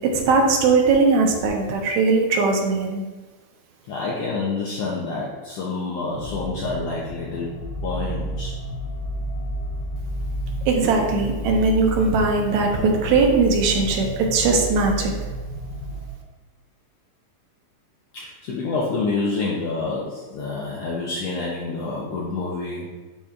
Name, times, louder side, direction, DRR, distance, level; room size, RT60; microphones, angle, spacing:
voice 1, 0.0-3.0 10.7-15.1, right 4 dB, 70° right, 1 dB, 1.8 m, -19 dB
voice 2, 3.9-8.5 18.1-22.9, left 3 dB, 90° left, -4 dB, 1.3 m, -28 dB
sound 1, 6.2-16.1, equal, 70° left, 1.5 m, -31 dB
11.5 x 4.3 x 2.4 m, 1.3 s
omnidirectional pair, 4.0 m